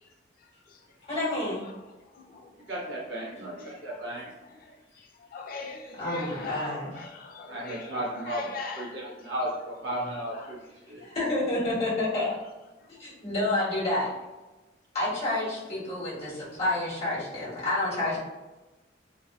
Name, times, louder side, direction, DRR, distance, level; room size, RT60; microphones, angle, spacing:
voice 1, 1.1-1.6 6.0-7.1 11.0-12.4 13.0-14.1 14.9-18.2, left 2 dB, 35° left, -8 dB, 1.4 m, -29 dB
voice 2, 2.2-2.5 2.9-3.0 3.9-4.1 4.4-4.6 5.3-9.0 10.3-10.5 11.0-11.2 16.2-16.3, left 3 dB, 50° left, 2 dB, 0.4 m, -40 dB
voice 3, 2.7-4.3 7.5-10.6 10.9-11.0, right 1 dB, 80° right, -5 dB, 1.2 m, -34 dB
3.2 x 2.5 x 2.2 m, 1.1 s
head